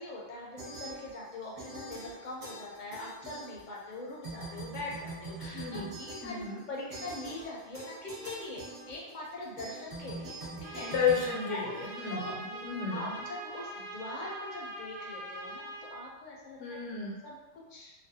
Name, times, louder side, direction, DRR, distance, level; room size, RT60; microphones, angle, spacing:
voice 1, 0.0-10.9 11.5-11.8 12.1-16.8 17.2-17.9, left 2 dB, 55° left, -3 dB, 0.6 m, -42 dB
sound 1, 0.6-1.3 1.6-3.9 4.2-12.1, right 2 dB, 45° right, 0.9 m, -44 dB
voice 2, 5.5-5.9 6.2-6.6 10.8-13.2 16.6-17.2, left 6 dB, 90° left, -2 dB, 0.9 m, -33 dB
Trumpet, 10.6-16.0, right 1 dB, 80° right, 0.9 m, -42 dB
2.5 x 2.1 x 2.6 m, 1.1 s
omnidirectional pair, 1.1 m